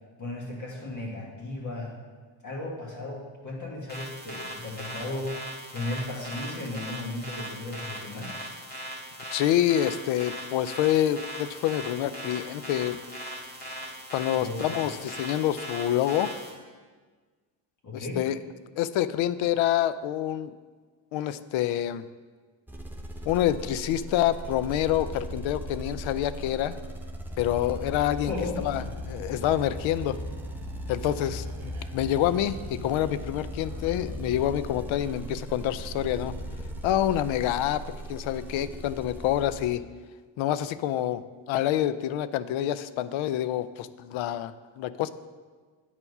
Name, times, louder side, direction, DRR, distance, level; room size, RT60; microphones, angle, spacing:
voice 1, 0.2-1.9 2.4-8.3 14.3-15.0 17.8-18.2 28.3-28.7, left 2 dB, 35° left, -2 dB, 1.8 m, -35 dB
sound 1, 3.9-16.5, equal, 20° left, 1.8 m, -39 dB
voice 2, 9.3-13.0 14.1-16.3 17.9-18.4 18.8-20.5 21.1-22.1 23.3-26.8 27.4-30.2 30.9-36.3 36.8-37.8 38.1-39.8 40.4-45.1, left 12 dB, 70° left, 15 dB, 0.5 m, -27 dB
sound 2, 22.7-39.7, equal, 5° right, 0.6 m, -38 dB
sound 3, 27.6-37.0, right 3 dB, 45° right, 1.6 m, -44 dB
8.6 x 4.5 x 5.4 m, 1.5 s
cardioid pair, 115°, 50 cm